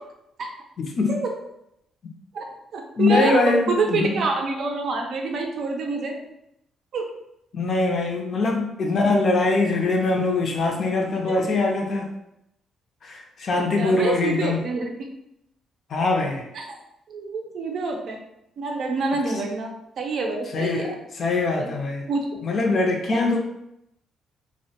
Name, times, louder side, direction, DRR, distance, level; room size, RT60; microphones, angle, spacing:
voice 1, 0.8-1.2 3.0-4.2 7.5-12.1 13.0-14.6 15.9-16.4 20.5-22.1 22.4-23.4, left 3 dB, 55° left, 1 dB, 0.5 m, -23 dB
voice 2, 2.7-6.2 6.9-7.1 11.3-11.4 13.5-15.1 16.5-16.8 17.1-18.2 18.6-21.0 21.6-21.7 22.1-22.2 22.5-22.6 23.1-23.4, right 3 dB, 65° right, 2 dB, 0.4 m, -27 dB
2.1 x 2.1 x 2.8 m, 0.81 s
cardioid pair, 90°, 0 cm